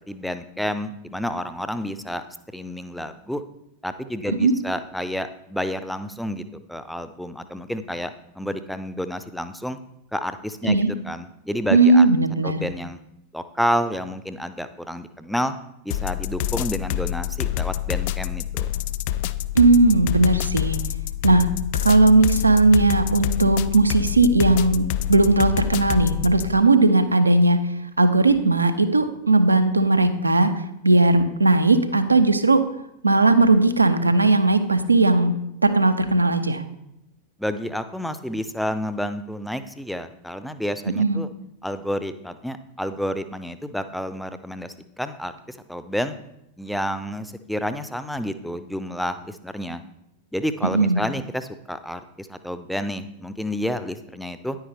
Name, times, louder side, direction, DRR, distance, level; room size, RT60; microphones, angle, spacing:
voice 1, 0.1-2.2 2.5-3.4 3.8-6.4 6.7-9.8 10.1-10.8 11.0-12.1 12.4-13.0 13.3-15.5 15.8-18.7 37.4-41.3 41.6-46.2 46.6-49.8 50.3-54.6, equal, ahead, 11 dB, 0.7 m, -30 dB
voice 2, 11.7-12.7 19.5-20.8 21.2-21.5 21.8-27.6 28.0-30.5 30.8-32.6 33.0-35.3 35.6-36.6 41.0-41.2 50.7-51.0, right 2 dB, 80° right, 10 dB, 0.9 m, -17 dB
sound 1, 15.9-26.6, left 13 dB, 50° left, 0.4 m, -27 dB
10.0 x 9.3 x 3.4 m, 0.82 s
figure-of-eight pair, 90°, 0 cm